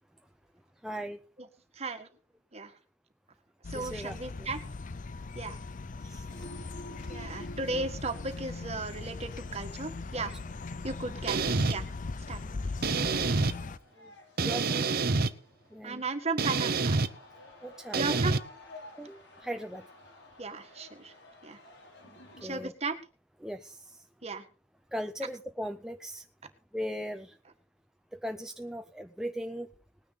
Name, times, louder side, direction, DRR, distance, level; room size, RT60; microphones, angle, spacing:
voice 1, 0.8-1.2 3.7-4.5 6.0-6.3 10.1-10.2 14.0-14.1 14.4-14.9 15.7-16.0 17.6-18.2 19.0-19.9 22.0-22.1 22.4-22.7 23.4-24.0 24.9-26.3 26.7-27.4 28.1-29.7, equal, 5° right, 6 dB, 0.6 m, -38 dB
voice 2, 1.8-2.1 2.5-2.7 3.7-4.6 5.3-5.6 7.1-10.3 10.8-11.9 12.3-12.4 15.8-17.0 17.9-18.4 20.4-21.1 21.4-21.6 22.4-22.9 24.2-24.4, right 3 dB, 35° right, 8 dB, 1.6 m, -35 dB
sound 1, 3.6-13.8, left 3 dB, 45° left, 0.5 m, -39 dB
sound 2, 6.3-22.6, left 1 dB, 80° left, 6.3 m, -53 dB
sound 3, 11.3-11.8 12.8-13.5 14.4-15.3 16.4-17.1 17.9-18.4, right 3 dB, 55° right, 0.8 m, -27 dB
19.5 x 9.7 x 4.1 m, 0.36 s
head